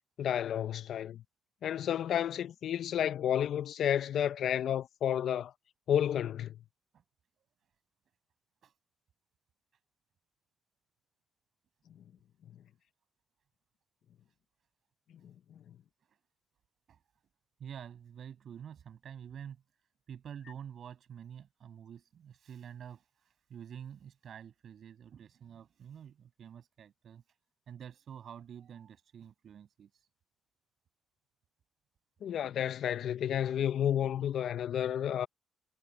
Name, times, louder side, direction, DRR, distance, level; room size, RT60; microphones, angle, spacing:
voice 1, 0.2-1.2 1.6-5.5 5.9-6.6 32.2-35.3, left 10 dB, 70° left, 0.6 m, -31 dB
voice 2, 17.6-19.6 20.1-27.4 27.7-30.1, right 8 dB, 60° right, 6.6 m, -48 dB
cardioid pair, 90°, 0 cm